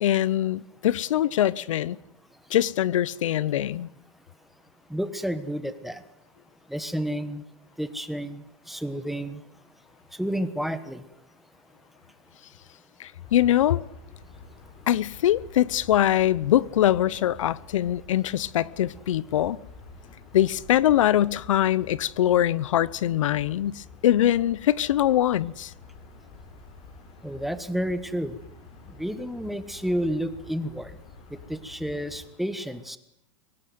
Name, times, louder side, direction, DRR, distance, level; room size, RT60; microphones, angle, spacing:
voice 1, 0.0-2.0 2.5-3.9 13.0-13.8 14.9-19.6 20.3-25.7, left 12 dB, 80° left, 0.9 m, -23 dB
voice 2, 4.9-6.0 6.7-7.4 7.8-9.6 10.1-11.2 14.8-14.9 27.2-28.4 28.9-31.0 31.3-33.0, equal, ahead, 1.3 m, -31 dB
sound 1, 13.2-32.3, left 3 dB, 35° left, 6.3 m, -48 dB
23.5 x 18.5 x 9.4 m
supercardioid pair, 145°, 16 cm